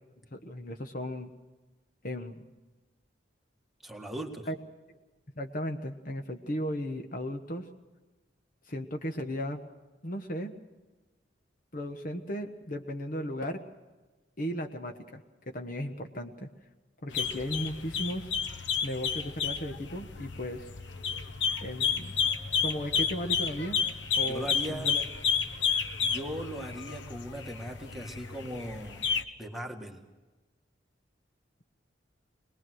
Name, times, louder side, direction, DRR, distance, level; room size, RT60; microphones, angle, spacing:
voice 1, 0.3-1.3 2.0-2.4 4.5-4.6 5.3-7.7 8.7-9.6 10.0-10.5 11.7-13.6 14.4-16.5 17.0-18.3 18.8-20.7 21.6-22.1 22.6-23.8 24.1-25.0, equal, 50° left, 5 dB, 1.3 m, -36 dB
voice 2, 3.8-4.5 24.2-24.9 26.0-29.0 29.4-30.0, equal, ahead, 1 dB, 1.8 m, -39 dB
sound 1, 17.1-29.2, left 6 dB, 85° left, 1.0 m, -31 dB
23.5 x 20.0 x 6.3 m, 1.2 s
head